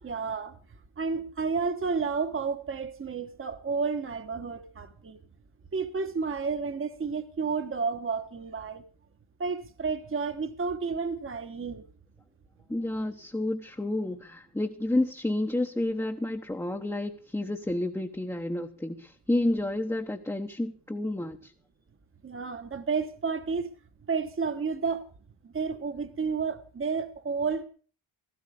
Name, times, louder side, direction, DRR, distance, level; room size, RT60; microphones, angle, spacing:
voice 1, 0.0-0.6 1.0-5.2 5.7-8.8 9.4-11.8 22.2-23.7 24.1-25.0 25.4-27.6, right 5 dB, 25° right, 1.2 m, -31 dB
voice 2, 12.7-21.5, left 1 dB, 5° left, 1.0 m, -30 dB
17.0 x 15.0 x 5.0 m
wide cardioid pair, 165°, 48 cm